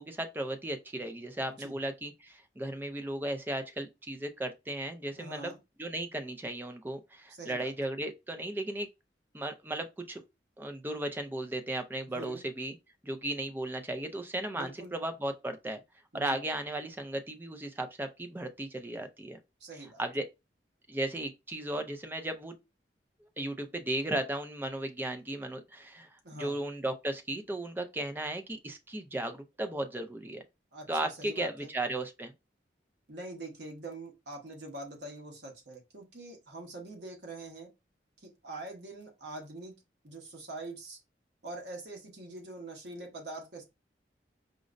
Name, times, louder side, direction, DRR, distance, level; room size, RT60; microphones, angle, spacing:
voice 1, 0.0-5.5 5.8-8.9 9.3-10.2 10.6-12.8 13.0-15.8 16.1-19.4 20.0-20.3 20.9-22.6 23.4-26.1 26.4-30.4 30.9-32.3, right 1 dB, 10° right, 0.4 m, -35 dB
voice 2, 5.2-5.6 7.3-7.7 12.1-12.4 14.5-14.9 16.1-16.4 19.6-20.0 26.2-26.6 30.7-31.7 33.1-37.7 38.2-39.7 40.0-41.0 41.4-43.6, right 2 dB, 70° right, 1.1 m, -44 dB
5.0 x 2.0 x 2.5 m
head